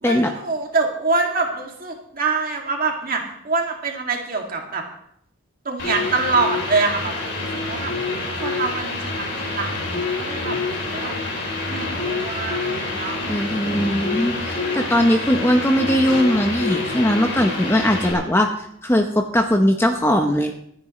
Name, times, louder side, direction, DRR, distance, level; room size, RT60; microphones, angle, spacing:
voice 1, 0.0-4.8 5.6-7.9 8.3-11.1 11.7-13.9 14.5-15.2, right 4 dB, 45° right, 1 dB, 2.2 m, -25 dB
sound 1, 5.8-18.1, left 3 dB, 55° left, 3.4 m, -27 dB
voice 2, 13.3-18.5 18.8-20.5, equal, 10° left, 4 dB, 0.7 m, -19 dB
26.0 x 9.6 x 3.1 m, 0.70 s
head